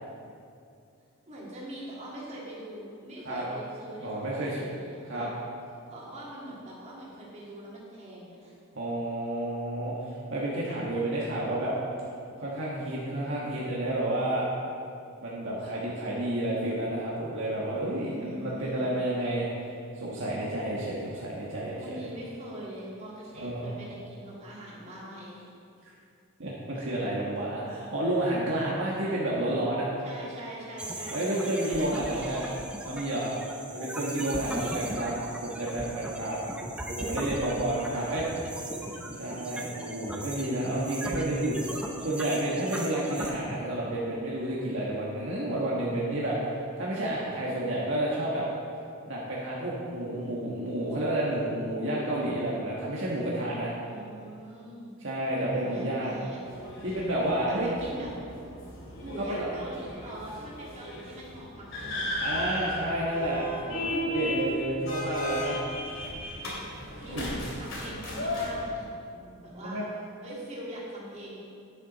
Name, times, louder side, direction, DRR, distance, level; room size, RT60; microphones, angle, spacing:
voice 1, 1.3-5.3 5.9-8.6 18.0-18.9 21.8-25.5 30.0-32.7 34.4-35.0 37.7-38.5 53.8-55.0 55.4-56.5 57.4-58.1 59.0-62.5 67.0-67.3 67.6-68.9 69.4-69.8 70.2-71.4, right 1 dB, 30° right, -6 dB, 2.7 m, -43 dB
voice 2, 4.0-4.6 5.1-5.3 8.7-11.7 12.4-14.5 15.2-19.7 19.9-22.1 23.3-23.8 26.4-29.9 31.1-32.5 32.8-33.3 33.7-35.1 35.4-36.4 36.9-38.2 39.1-41.6 42.0-48.5 49.1-53.7 55.0-56.2 56.8-57.7 59.2-59.5 62.2-65.6 67.1-67.4 69.1-69.8, right 1 dB, 60° right, -5 dB, 1.5 m, -30 dB
sound 1, 30.8-43.3, right 1 dB, 5° right, 0.8 m, -38 dB
sound 2, 56.4-68.6, left 1 dB, 65° left, 2.7 m, -35 dB
10.5 x 9.8 x 4.1 m, 2.5 s
head